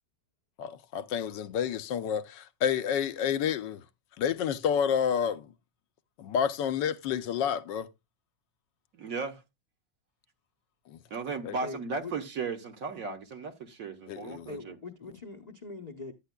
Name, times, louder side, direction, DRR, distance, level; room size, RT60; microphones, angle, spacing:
voice 1, 0.6-3.8 4.2-5.5 6.2-7.9 10.9-11.0 11.4-11.6 14.1-14.5, left 8 dB, 75° left, 1.3 m, -29 dB
voice 2, 8.9-9.4 11.1-14.8, right 4 dB, 55° right, 1.4 m, -36 dB
voice 3, 11.6-12.1 14.5-16.1, left 3 dB, 40° left, 0.5 m, -42 dB
11.5 x 9.0 x 2.2 m
omnidirectional pair, 2.0 m